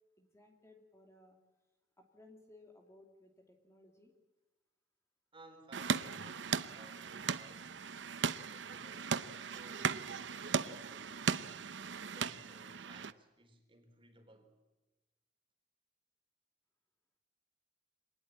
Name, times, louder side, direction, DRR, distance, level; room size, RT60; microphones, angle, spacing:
voice 1, 0.2-1.4 2.0-4.1, left 2 dB, 15° left, 2.7 m, -60 dB
voice 2, 5.3-7.8 8.5-11.8 12.1-14.6, right 2 dB, 30° right, 4.2 m, -60 dB
sound 1, 5.7-13.1, right 6 dB, 75° right, 0.8 m, -37 dB
Acoustic guitar / Strum, 6.2-9.3, right 1 dB, 45° right, 3.6 m, -62 dB
26.0 x 19.5 x 8.8 m
head